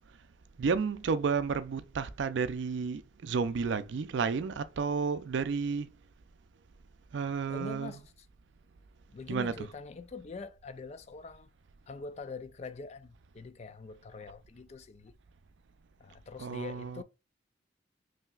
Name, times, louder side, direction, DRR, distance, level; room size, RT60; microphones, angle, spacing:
voice 1, 0.6-5.9 7.1-8.0 9.3-9.7 16.4-17.0, right 5 dB, 70° right, 0.4 m, -32 dB
voice 2, 7.5-8.3 9.1-11.5 11.9-15.2 16.0-17.0, left 4 dB, 35° left, 0.4 m, -44 dB
5.6 x 2.8 x 2.3 m
head